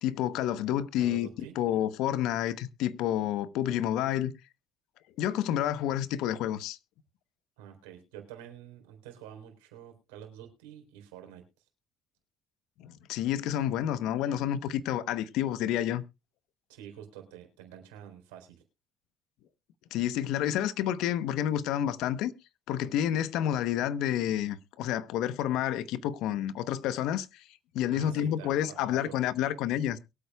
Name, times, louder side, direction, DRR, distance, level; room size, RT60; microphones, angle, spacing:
voice 1, 0.0-1.3 1.6-4.3 5.2-6.8 12.8-16.0 19.9-22.3 22.7-27.4 27.7-30.0, left 11 dB, 70° left, 0.9 m, -29 dB
voice 2, 1.0-1.6 7.6-11.4 16.7-18.6 22.8-22.9 27.9-29.3, right 10 dB, 80° right, 4.0 m, -48 dB
22.5 x 8.4 x 2.3 m
hypercardioid pair, 60°, 0 cm